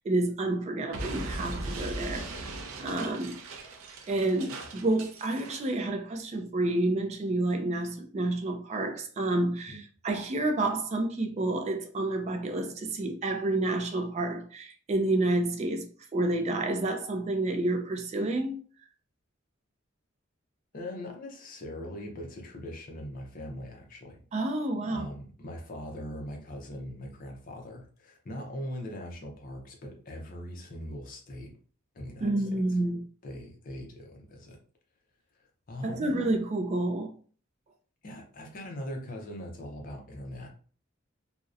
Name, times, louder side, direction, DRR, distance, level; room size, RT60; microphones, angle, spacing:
voice 1, 0.0-2.5 2.8-3.4 4.1-15.9 16.1-18.6 24.3-25.1 32.2-33.0 35.8-37.1, right 2 dB, 35° right, 0.3 m, -29 dB
Explosion, 0.9-5.7, right 2 dB, 85° right, 0.5 m, -39 dB
voice 2, 20.7-24.2 24.9-31.6 31.9-32.8 33.2-34.6 35.3-36.1 38.0-40.5, equal, 45° left, 0.5 m, -41 dB
2.6 x 2.0 x 2.4 m
head